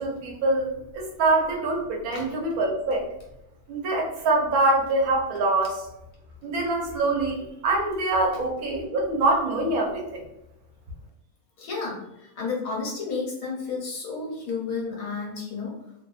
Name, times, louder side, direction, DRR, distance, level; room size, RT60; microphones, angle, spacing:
voice 1, 0.0-3.1 3.7-5.8 6.4-10.2, right 2 dB, 80° right, 0 dB, 1.2 m, -24 dB
voice 2, 11.6-15.9, left 4 dB, 75° left, -2 dB, 1.3 m, -32 dB
3.0 x 2.0 x 2.3 m, 0.87 s
omnidirectional pair, 1.5 m